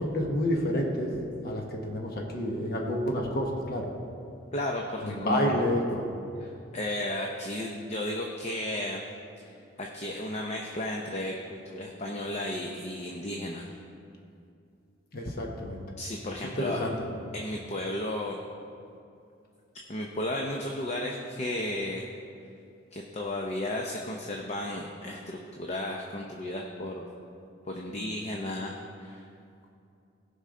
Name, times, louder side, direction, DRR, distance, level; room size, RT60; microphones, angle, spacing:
voice 1, 0.0-3.9 5.0-6.0 15.1-15.8 16.4-16.9, equal, 50° left, 0 dB, 1.1 m, -29 dB
voice 2, 4.5-5.7 6.4-9.0 9.4-9.5 9.8-13.7 16.0-16.8 17.3-18.4 19.9-22.0 22.9-27.0 27.7-29.2, left 1 dB, 35° left, 0 dB, 0.6 m, -34 dB
16.5 x 5.6 x 3.7 m, 2.5 s
head